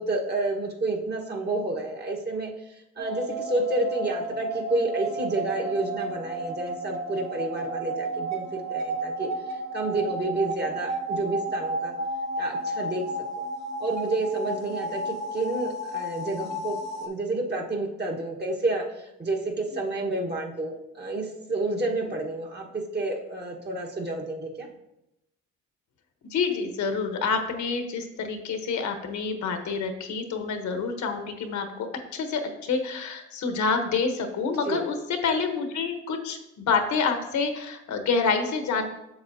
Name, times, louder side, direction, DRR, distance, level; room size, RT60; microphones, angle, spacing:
voice 1, 0.0-9.3 9.7-11.9 12.4-13.0 13.8-22.7 22.9-24.7 34.6-34.8, right 2 dB, 35° right, 0 dB, 1.4 m, -30 dB
sound 1, 3.0-17.1, right 1 dB, 60° right, 1.4 m, -32 dB
voice 2, 26.2-38.9, left 5 dB, 70° left, 6 dB, 1.1 m, -28 dB
7.9 x 6.7 x 2.7 m, 0.88 s
cardioid pair, 90°, 30 cm